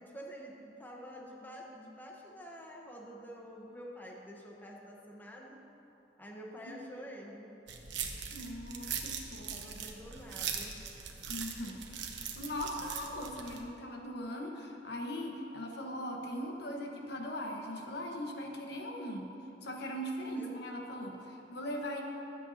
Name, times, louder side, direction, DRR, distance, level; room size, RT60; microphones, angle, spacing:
voice 1, 0.0-5.6 6.2-7.5 9.5-10.8 20.3-20.8, equal, 10° left, -2 dB, 1.1 m, -48 dB
sound 1, 7.7-13.6, right 7 dB, 70° right, 1.0 m, -41 dB
voice 2, 8.3-9.6 11.3-19.3 19.6-22.0, equal, 65° left, 1 dB, 1.3 m, -40 dB
23.0 x 8.3 x 2.8 m, 2.9 s
head